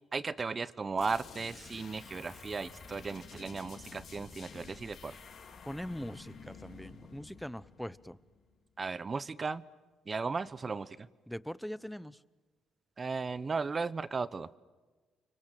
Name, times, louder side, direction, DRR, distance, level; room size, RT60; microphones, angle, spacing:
voice 1, 0.1-5.1 8.8-9.6 10.1-11.1 13.0-14.5, right 4 dB, 35° right, 18 dB, 0.9 m, -36 dB
sound 1, 1.0-8.5, left 5 dB, 60° left, 4.4 m, -51 dB
voice 2, 5.7-8.2 11.3-12.2, equal, ahead, 18 dB, 0.8 m, -42 dB
30.0 x 24.5 x 7.6 m, 1.3 s
cardioid pair, 90°, 0 cm